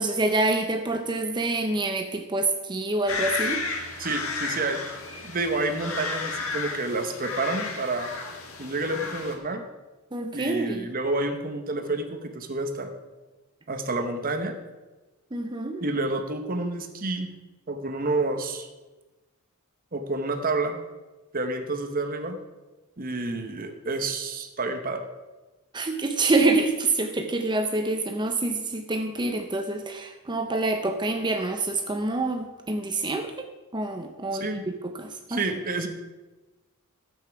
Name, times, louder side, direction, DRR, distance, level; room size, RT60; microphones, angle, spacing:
voice 1, 0.0-3.6 10.1-10.9 15.3-15.8 25.7-33.5 33.7-35.4, right 2 dB, 20° right, 6 dB, 0.6 m, -26 dB
sound 1, 3.1-9.3, left 4 dB, 70° left, 1.7 m, -33 dB
voice 2, 4.0-8.1 8.6-9.6 10.3-12.9 13.7-14.5 15.8-17.3 17.7-18.7 19.9-20.8 21.3-22.4 23.0-25.0 34.4-34.6 35.3-35.9, right 2 dB, 40° right, 6 dB, 1.0 m, -29 dB
12.5 x 8.4 x 4.7 m, 1.2 s
head